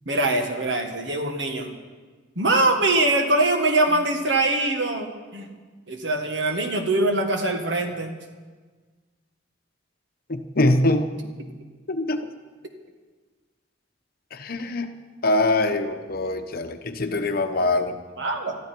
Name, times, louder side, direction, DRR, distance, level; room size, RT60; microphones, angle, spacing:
voice 1, 0.1-1.7 2.4-5.5 5.9-8.1 18.2-18.6, right 2 dB, 75° right, 4 dB, 1.8 m, -23 dB
voice 2, 10.3-11.1 11.9-12.2 14.3-14.9 15.2-18.0, left 2 dB, 55° left, 7 dB, 1.0 m, -23 dB
21.0 x 13.5 x 4.6 m, 1.4 s
head